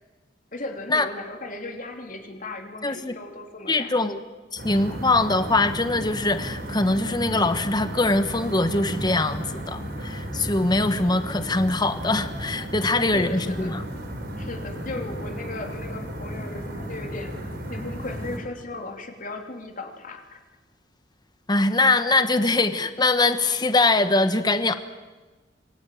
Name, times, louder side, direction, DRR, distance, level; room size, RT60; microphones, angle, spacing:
voice 1, 0.5-4.0 13.0-13.7 14.4-17.3 17.7-20.4, left 2 dB, 45° left, 4 dB, 3.2 m, -36 dB
voice 2, 2.8-3.1 3.7-4.2 4.5-13.8 21.5-24.8, left 2 dB, 25° left, 10 dB, 1.2 m, -22 dB
sound 1, 4.6-18.4, right 1 dB, 60° right, 5.9 m, -34 dB
25.5 x 21.5 x 9.3 m, 1.3 s
head